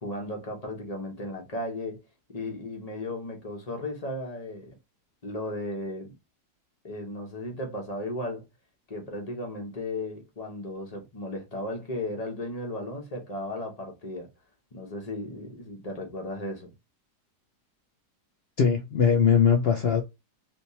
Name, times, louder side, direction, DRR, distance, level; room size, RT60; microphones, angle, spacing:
voice 1, 0.0-2.0 2.3-4.7 5.2-6.1 6.8-8.4 8.9-14.3 14.7-16.7, left 1 dB, 30° left, 1.0 m, -35 dB
voice 2, 18.6-20.0, left 7 dB, 80° left, 0.5 m, -21 dB
3.4 x 2.8 x 2.7 m
omnidirectional pair, 1.7 m